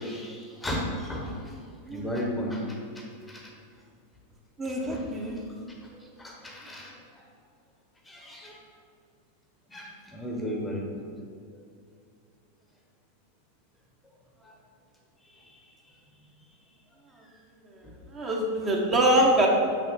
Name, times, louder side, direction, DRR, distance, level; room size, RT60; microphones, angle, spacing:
voice 1, 0.0-1.6 1.9-3.5 4.8-5.3 5.9-7.2 8.0-8.6 9.7-11.0 14.4-14.5 15.2-15.7 17.8-17.9, equal, 10° left, -1 dB, 1.0 m, -35 dB
voice 2, 4.6-5.4 18.1-19.5, right 1 dB, 25° right, -1 dB, 1.1 m, -24 dB
6.5 x 5.9 x 4.1 m, 2.2 s
figure-of-eight pair, 90°, 0 cm